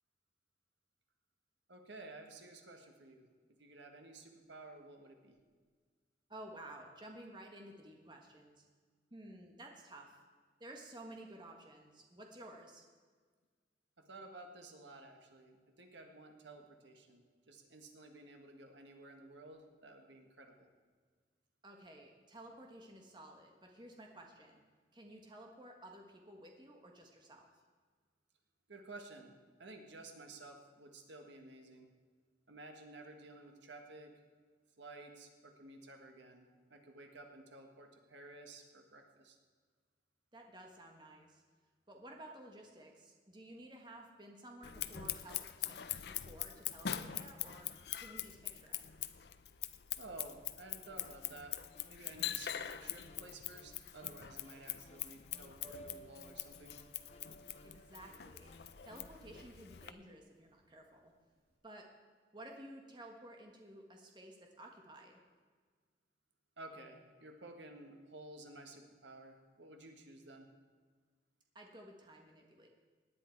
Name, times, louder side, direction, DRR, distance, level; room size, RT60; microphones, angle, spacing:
voice 1, 1.7-3.3 3.6-5.4 14.0-20.7 28.7-29.3 29.6-31.9 32.5-34.1 34.8-39.4 50.0-51.6 51.9-56.8 66.6-70.5, right 2 dB, 80° right, 4 dB, 1.6 m, -53 dB
voice 2, 6.3-8.6 9.1-10.2 10.6-12.8 21.6-24.6 24.9-27.5 40.3-41.4 41.9-45.8 46.1-47.7 48.0-48.9 57.6-58.5 58.8-61.1 61.6-61.9 62.3-65.2 71.5-72.7, right 1 dB, 25° right, 1 dB, 1.4 m, -54 dB
Scissors, 44.6-59.9, left 11 dB, 60° left, 0.5 m, -43 dB
sound 1, 50.6-59.9, left 1 dB, 35° left, 1.0 m, -63 dB
Piano, 55.6-61.5, right 2 dB, 55° right, 3.0 m, -59 dB
18.0 x 10.5 x 4.6 m, 1.5 s
head